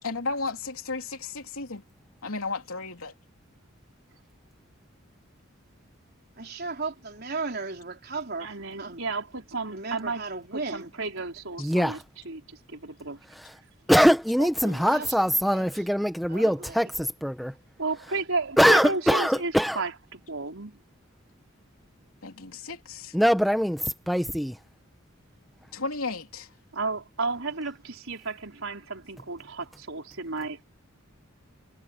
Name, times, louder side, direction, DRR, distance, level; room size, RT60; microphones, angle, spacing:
voice 1, 0.0-1.8 2.2-3.1 22.2-23.2 25.7-26.5, left 3 dB, 90° left, 3.3 m, -34 dB
voice 2, 6.4-9.0 9.7-10.9 14.6-15.9 16.3-16.9, right 3 dB, 50° right, 4.3 m, -36 dB
voice 3, 8.4-10.2 10.5-12.0 12.2-13.2 14.4-14.8 17.8-20.8 26.7-30.7, right 3 dB, 70° right, 4.5 m, -33 dB
voice 4, 11.6-12.0 13.3-13.5 13.9-17.5 18.6-19.8 23.1-24.6, equal, ahead, 1.1 m, -23 dB
head